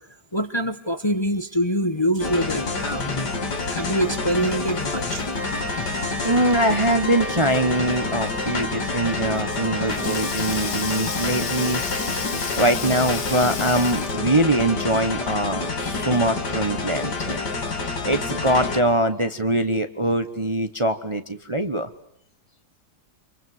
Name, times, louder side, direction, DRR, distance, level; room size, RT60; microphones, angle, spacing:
voice 1, 0.3-3.3 3.6-5.2, equal, 20° left, 9 dB, 1.1 m, -25 dB
sound 1, 2.2-18.8, left 3 dB, 90° left, 3.3 m, -28 dB
sound 2, 5.3-13.2, right 2 dB, 80° right, 5.7 m, -36 dB
voice 2, 6.2-11.8 12.4-17.4 18.0-21.9, right 1 dB, 20° right, 8 dB, 1.1 m, -23 dB
Sink (filling or washing), 9.6-14.4, left 6 dB, 60° left, 1.9 m, -33 dB
27.0 x 23.0 x 9.5 m, 0.70 s
omnidirectional pair, 1.7 m